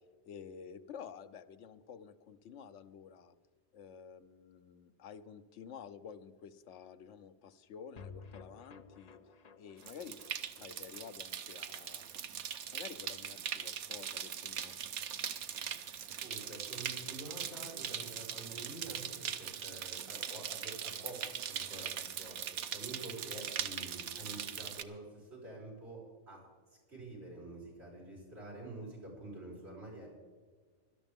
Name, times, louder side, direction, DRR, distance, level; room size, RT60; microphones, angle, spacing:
voice 1, 0.3-3.3 3.7-9.2 9.6-10.2 10.5-12.0 12.7-14.7, left 7 dB, 90° left, 11 dB, 1.0 m, -50 dB
sound 1, 8.0-14.4 14.7-14.8 15.0-15.1, left 5 dB, 45° left, 0.6 m, -56 dB
sound 2, 9.8-24.8, right 8 dB, 85° right, 1.0 m, -41 dB
voice 2, 16.2-21.2 21.5-26.4 26.9-30.1, right 2 dB, 65° right, -5 dB, 5.5 m, -48 dB
17.5 x 12.5 x 3.6 m, 1.5 s
omnidirectional pair, 1.2 m